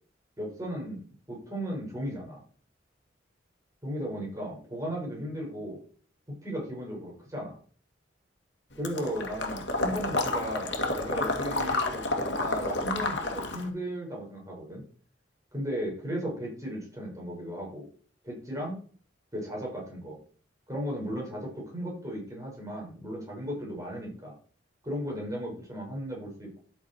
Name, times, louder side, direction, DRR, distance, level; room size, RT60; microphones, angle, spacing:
voice 1, 0.4-2.4 3.8-5.8 6.4-7.6 8.8-14.8 15.5-17.9 18.2-18.8 19.3-20.2 20.7-24.4 24.8-26.6, equal, 20° right, -2 dB, 5.6 m, -36 dB
Water / Liquid, 8.8-13.7, left 2 dB, 70° left, 2.3 m, -30 dB
12.0 x 6.6 x 4.6 m, 0.43 s
head